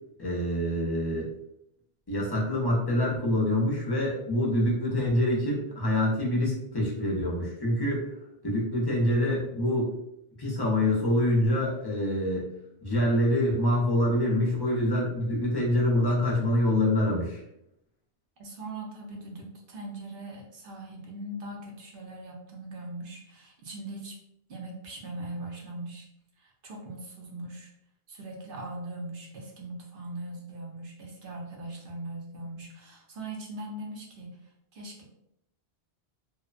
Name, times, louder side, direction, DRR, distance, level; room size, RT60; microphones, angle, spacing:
voice 1, 0.2-1.3 2.1-8.1 8.4-9.9 10.4-12.5 12.8-17.4, left 1 dB, 30° left, -3 dB, 0.5 m, -26 dB
voice 2, 18.4-24.2 24.5-26.1 26.4-27.7 28.1-34.4 34.7-35.0, right 1 dB, 60° right, -1 dB, 0.8 m, -40 dB
2.8 x 2.1 x 2.4 m, 0.79 s
omnidirectional pair, 1.1 m